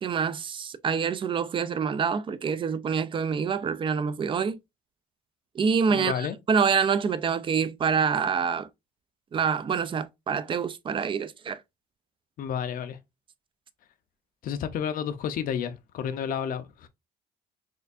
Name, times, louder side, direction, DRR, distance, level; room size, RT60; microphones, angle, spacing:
voice 1, 0.0-4.6 5.6-6.1 6.5-8.7 9.3-11.6, right 6 dB, 30° right, 0.4 m, -26 dB
voice 2, 5.9-6.4 12.4-13.0 14.4-16.9, left 8 dB, 55° left, 0.6 m, -31 dB
4.4 x 2.5 x 2.4 m
cardioid pair, 110°, 17 cm